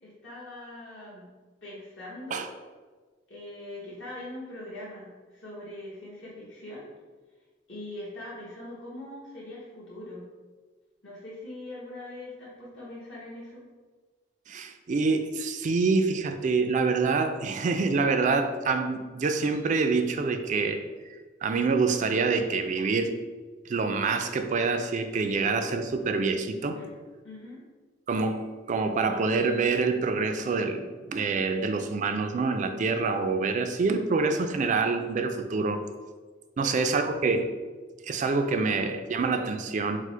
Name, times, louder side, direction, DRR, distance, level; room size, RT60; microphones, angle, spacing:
voice 1, 0.0-1.3 1.6-2.5 3.3-6.8 7.7-10.3 11.0-13.6 26.0-26.1 26.8-26.9 27.2-27.6 36.6-37.3, left 1 dB, 65° left, -7 dB, 1.1 m, -42 dB
voice 2, 14.5-20.8 21.4-23.1 23.7-26.8 28.1-35.8 36.6-37.5 38.0-40.0, right 4 dB, 40° right, 7 dB, 0.3 m, -26 dB
4.6 x 2.1 x 4.5 m, 1.4 s
head